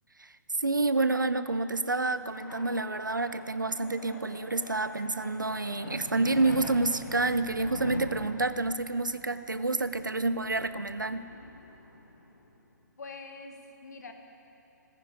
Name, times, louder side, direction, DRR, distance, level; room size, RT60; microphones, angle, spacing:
voice 1, 0.6-11.3, right 2 dB, 80° right, 12 dB, 0.7 m, -28 dB
sound 1, 1.3-12.6, left 2 dB, 75° left, 2.1 m, -44 dB
voice 2, 13.0-14.1, left 3 dB, 60° left, 5 dB, 1.7 m, -44 dB
29.0 x 10.0 x 4.9 m, 2.8 s
figure-of-eight pair, 125°, 10 cm